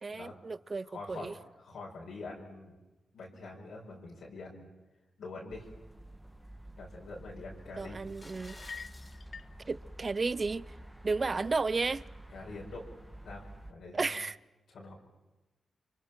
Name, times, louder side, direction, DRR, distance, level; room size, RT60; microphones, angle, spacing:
voice 1, 0.0-1.3 7.8-8.6 9.7-10.7 11.0-12.0 13.9-14.4, right 4 dB, 45° right, 0.7 m, -33 dB
voice 2, 0.8-2.8 3.1-4.7 5.2-5.7 6.8-8.0 12.3-12.9 13.2-14.1 14.7-15.0, left 3 dB, 75° left, 5.0 m, -45 dB
sound 1, 5.5-13.7, right 1 dB, 10° right, 2.1 m, -50 dB
sound 2, 7.9-9.2, left 1 dB, 25° left, 4.3 m, -53 dB
sound 3, 8.5-9.6, left 5 dB, 60° left, 0.7 m, -46 dB
28.0 x 24.5 x 6.0 m
supercardioid pair, 40°, 0 cm